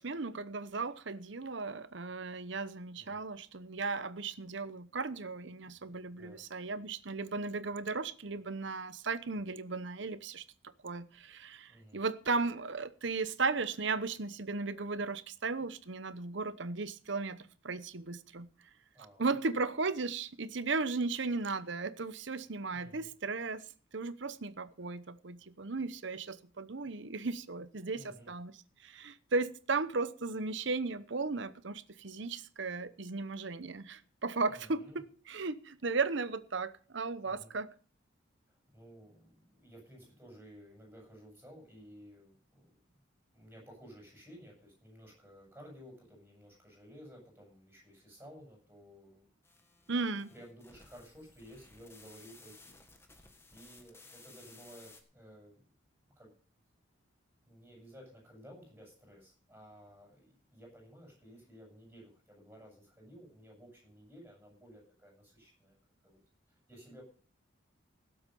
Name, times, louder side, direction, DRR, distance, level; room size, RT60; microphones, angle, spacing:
voice 1, 0.0-10.4 10.8-18.5 19.2-23.6 23.9-28.6 28.8-37.7 49.9-50.3, right 3 dB, 60° right, 0.9 m, -36 dB
voice 2, 11.7-12.0 18.9-19.3 22.7-23.1 27.9-28.3 34.5-35.0 37.2-37.5 38.5-43.0 43.3-49.2 50.3-52.8 53.1-53.2 53.5-55.6 56.2-56.3 57.4-65.8 66.0-66.2 66.5-67.0, equal, 10° right, 7.9 m, -55 dB
sound 1, 49.4-55.0, left 3 dB, 10° left, 1.6 m, -58 dB
17.5 x 7.9 x 5.4 m
head